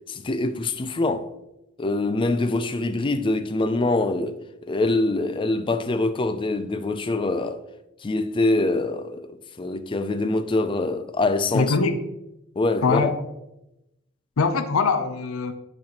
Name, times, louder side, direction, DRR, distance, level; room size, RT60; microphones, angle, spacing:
voice 1, 0.1-1.3 1.8-4.4 4.7-7.6 8.0-11.8 12.6-13.1, left 2 dB, 25° left, 0.4 m, -24 dB
voice 2, 11.5-12.0 12.8-13.2 14.4-15.5, left 4 dB, 85° left, 0.6 m, -22 dB
10.5 x 4.2 x 2.9 m
head